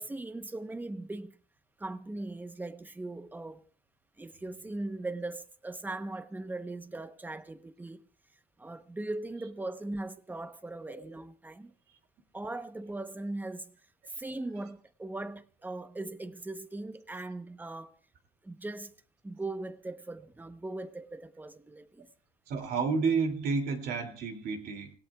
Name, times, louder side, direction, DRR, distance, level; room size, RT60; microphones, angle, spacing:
voice 1, 0.0-1.4 1.8-3.6 4.2-8.0 8.6-11.7 12.3-13.8 14.2-18.0 18.4-19.0 19.2-22.1, right 2 dB, 10° right, 0.9 m, -39 dB
voice 2, 22.5-24.9, right 5 dB, 70° right, 2.7 m, -30 dB
26.0 x 17.0 x 2.4 m
cardioid pair, 110°, 17 cm